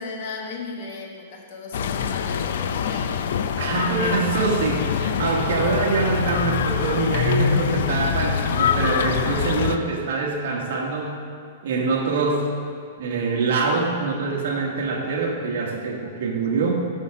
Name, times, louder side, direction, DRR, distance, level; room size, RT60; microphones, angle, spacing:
voice 1, 0.0-3.2, left 4 dB, 45° left, 1 dB, 1.2 m, -36 dB
sound 1, 1.7-9.8, left 7 dB, 65° left, 0.4 m, -24 dB
voice 2, 3.6-11.2 11.6-12.5 13.0-16.7, right 4 dB, 60° right, -1 dB, 1.5 m, -24 dB
8.2 x 5.7 x 5.0 m, 2.2 s
supercardioid pair, 170°, 0 cm